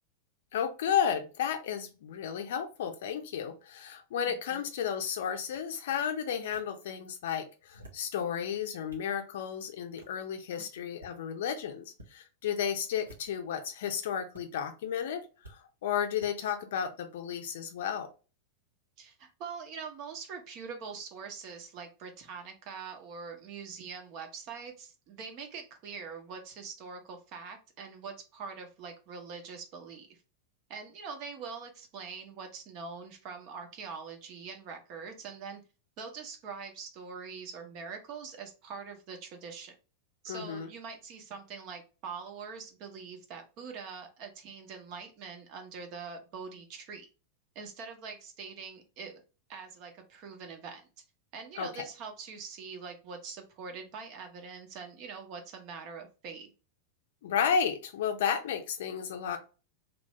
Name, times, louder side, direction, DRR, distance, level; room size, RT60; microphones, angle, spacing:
voice 1, 0.5-18.1 40.3-40.7 51.6-51.7 57.2-59.4, left 8 dB, 55° left, 7 dB, 0.5 m, -33 dB
voice 2, 4.3-4.6 10.6-10.9 19.0-30.2 30.7-35.6 36.0-39.7 40.2-47.1 47.5-49.2 49.5-50.9 51.3-56.5, right 5 dB, 40° right, 4 dB, 0.8 m, -43 dB
sound 1, 5.5-5.6 6.5-6.6 7.6-8.1 8.6-9.1 10.0-10.2 10.8-11.2 11.9-12.1 13.0-13.5 14.3-14.4 15.4-15.6 16.2-16.3, right 1 dB, 75° right, 0.8 m, -53 dB
3.1 x 2.6 x 3.2 m, 0.33 s
figure-of-eight pair, 90°, 0 cm